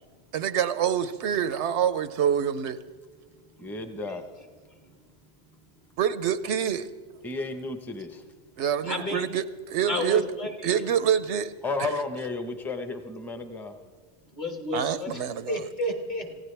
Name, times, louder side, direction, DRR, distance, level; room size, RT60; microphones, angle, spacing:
voice 1, 0.3-2.8 6.0-6.9 8.6-10.2 10.6-11.5 14.7-15.7, right 8 dB, 75° right, 14 dB, 0.9 m, -26 dB
voice 2, 3.6-4.2 7.2-8.2 11.6-13.8, left 3 dB, ahead, 6 dB, 0.8 m, -33 dB
voice 3, 8.8-9.2 9.9-10.8 14.4-15.2 15.5-16.3, left 1 dB, 40° left, 3 dB, 1.9 m, -31 dB
26.5 x 16.0 x 3.4 m, 1.5 s
omnidirectional pair, 1.2 m